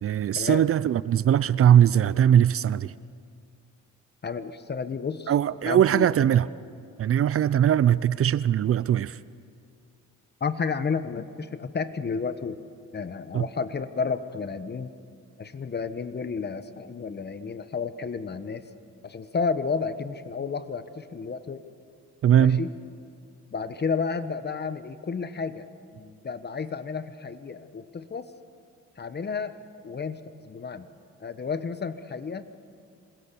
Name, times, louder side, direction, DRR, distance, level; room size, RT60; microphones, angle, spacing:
voice 1, 0.0-2.9 5.3-6.5 7.0-9.2 13.3-13.5 22.2-22.6, right 10 dB, 50° right, 0.5 m, -20 dB
voice 2, 4.2-5.3 5.6-6.1 10.4-12.6 12.9-14.9 15.4-18.6 19.0-21.6 22.4-22.7 23.5-25.7 25.9-28.3 29.0-29.5 29.8-30.9 31.2-32.5, left 5 dB, 35° left, 1.2 m, -31 dB
27.0 x 21.0 x 7.0 m
cardioid pair, 90°, 30 cm